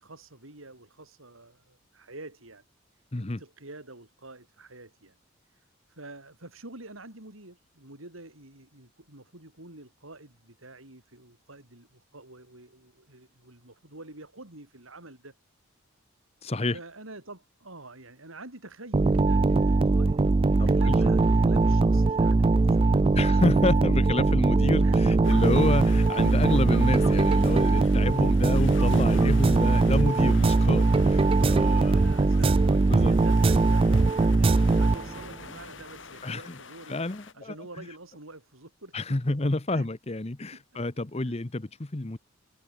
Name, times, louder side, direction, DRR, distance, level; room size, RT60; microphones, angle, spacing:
voice 1, 0.0-2.6 2.9-5.2 5.4-15.4 16.7-20.2 20.5-23.4 24.8-25.6 28.1-28.2 31.7-37.0 37.3-39.0 39.7-39.9 40.5-40.6 41.3-41.4, right 2 dB, 80° right, 5.7 m, -47 dB
voice 2, 16.4-16.8 20.6-21.0 23.1-32.0 32.3-32.5 32.9-33.1 36.2-36.5 36.9-37.8 38.9-42.2, left 2 dB, 30° left, 0.9 m, -29 dB
sound 1, 18.9-35.4, right 3 dB, 25° right, 0.3 m, -21 dB
sound 2, 25.2-37.3, left 5 dB, 65° left, 2.3 m, -46 dB
head